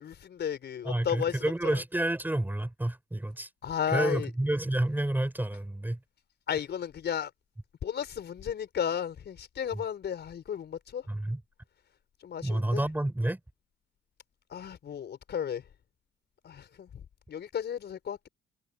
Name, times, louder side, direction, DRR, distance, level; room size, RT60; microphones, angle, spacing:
voice 1, 0.0-1.8 3.6-4.3 6.5-7.3 7.8-11.1 12.2-12.8 14.5-15.7 16.4-18.3, left 8 dB, 60° left, 4.7 m, -34 dB
voice 2, 0.8-3.5 3.9-6.0 11.1-11.4 12.4-13.4, right 1 dB, 10° right, 3.6 m, -29 dB
cardioid pair, 90°, 20 cm